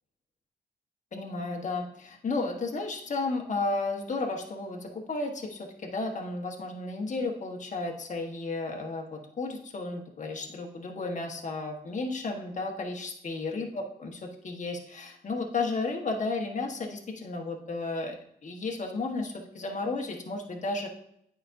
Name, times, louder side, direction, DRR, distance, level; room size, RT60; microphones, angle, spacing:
voice 1, 1.1-18.2 18.4-20.9, left 3 dB, 45° left, 1 dB, 1.2 m, -33 dB
8.8 x 5.1 x 2.6 m, 0.74 s
cardioid pair, 70°, 18 cm